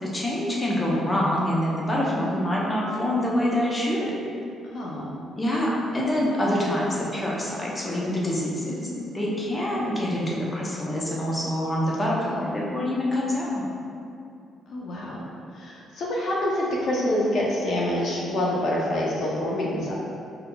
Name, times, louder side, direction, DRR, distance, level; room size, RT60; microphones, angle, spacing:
voice 1, 0.0-4.1 5.4-8.9 9.1-13.6, left 1 dB, 20° left, -4 dB, 0.8 m, -26 dB
voice 2, 4.6-5.2 8.9-9.0 12.3-12.5 14.7-15.2 15.5-20.0, left 1 dB, 65° left, -4 dB, 0.7 m, -27 dB
5.2 x 3.9 x 2.3 m, 2.5 s
cardioid pair, 90°, 0 cm